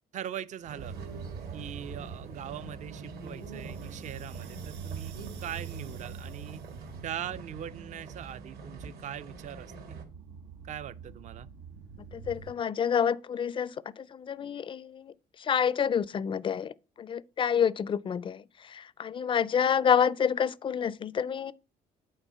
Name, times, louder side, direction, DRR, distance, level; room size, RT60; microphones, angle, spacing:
voice 1, 0.1-1.0 1.5-6.6 7.0-10.0 10.6-11.5, right 10 dB, 45° right, 0.5 m, -41 dB
sound 1, 0.6-10.0, right 4 dB, 65° right, 2.1 m, -45 dB
sound 2, 0.8-12.5, right 6 dB, 90° right, 0.9 m, -45 dB
voice 2, 12.1-15.1 15.4-21.5, left 7 dB, 30° left, 0.4 m, -28 dB
8.9 x 4.0 x 5.5 m
cardioid pair, 110°, 17 cm